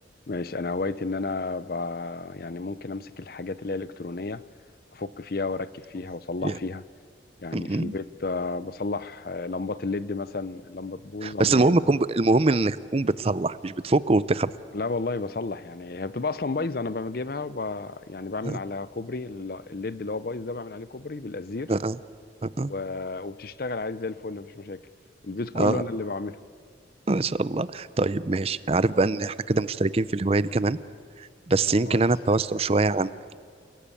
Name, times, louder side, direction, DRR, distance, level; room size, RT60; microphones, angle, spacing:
voice 1, 0.3-4.4 4.9-6.8 7.4-11.7 14.7-21.7 22.7-24.8 25.2-26.4 31.9-32.0, left 3 dB, 50° left, 0.6 m, -32 dB
voice 2, 7.5-7.9 11.2-14.5 18.4-18.6 21.7-22.0 22.4-22.7 25.5-25.8 27.1-30.8 31.2-33.1, right 2 dB, 30° right, 0.5 m, -23 dB
29.0 x 19.0 x 8.5 m
head